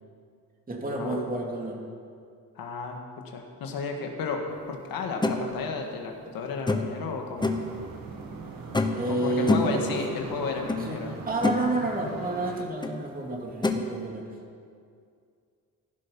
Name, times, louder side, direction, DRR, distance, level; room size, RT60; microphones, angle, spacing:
voice 1, 0.7-1.8 8.9-9.8 10.1-10.2 10.9-11.0 11.3-14.3, right 2 dB, 25° right, 0 dB, 2.8 m, -30 dB
voice 2, 2.6-4.4 4.7-7.5 9.1-11.1, left 4 dB, 80° left, 2 dB, 2.0 m, -33 dB
sound 1, 5.2-5.4 6.7-7.0 7.4-7.7 8.7-9.1 9.5-9.8 10.7-10.8 11.2-11.6 12.8-12.9 13.6-13.8, left 2 dB, 15° left, 1.1 m, -25 dB
sound 2, 7.4-12.6, right 4 dB, 70° right, 2.0 m, -41 dB
15.0 x 12.0 x 5.6 m, 2.3 s
cardioid pair, 100°, 35 cm